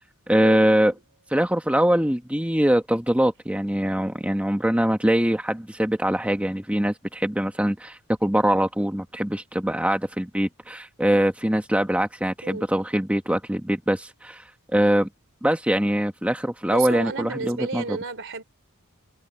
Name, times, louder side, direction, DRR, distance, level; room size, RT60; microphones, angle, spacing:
voice 1, 0.3-0.9 1.3-14.4 14.7-15.1 15.4-18.0, right 1 dB, 5° right, 1.4 m, -23 dB
voice 2, 12.4-12.7 16.7-18.4, right 4 dB, 60° right, 3.2 m, -32 dB
head